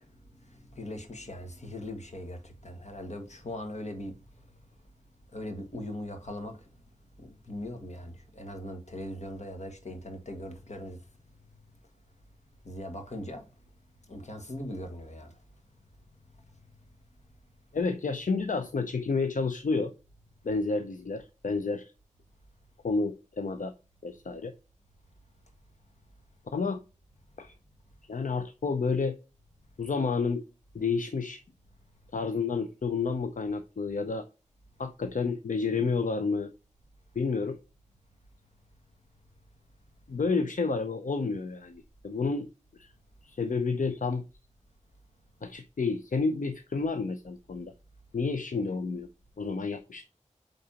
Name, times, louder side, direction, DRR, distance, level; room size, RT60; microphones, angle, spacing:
voice 1, 0.0-4.4 5.3-6.7 7.2-11.0 12.6-13.5 14.1-15.3, left 1 dB, 60° left, 1.7 m, -40 dB
voice 2, 17.7-19.9 20.4-21.9 22.8-23.7 24.0-24.5 26.5-26.8 27.4-27.5 28.0-29.1 29.8-30.4 30.7-31.4 32.1-34.3 34.8-36.5 37.1-37.6 40.1-42.5 42.7-42.9 43.2-44.2 45.4-47.7 48.1-49.1 49.4-50.0, left 4 dB, 80° left, 0.6 m, -30 dB
8.6 x 3.9 x 2.9 m
wide cardioid pair, 70°, 13 cm